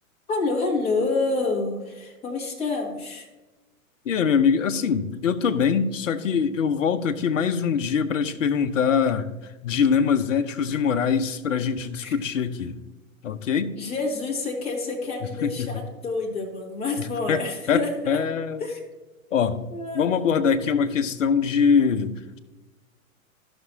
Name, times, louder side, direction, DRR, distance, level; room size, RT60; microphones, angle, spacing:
voice 1, 0.3-3.3 12.0-12.2 13.8-18.2 18.6-18.8 19.7-20.2, left 3 dB, 15° left, -2 dB, 1.7 m, -28 dB
voice 2, 4.0-9.3 9.6-12.8 13.2-13.8 15.4-15.7 17.0-18.6 19.3-19.6 19.9-22.4, left 6 dB, 60° left, 10 dB, 0.8 m, -23 dB
14.0 x 6.1 x 2.7 m, 1.1 s
figure-of-eight pair, 110°, 42 cm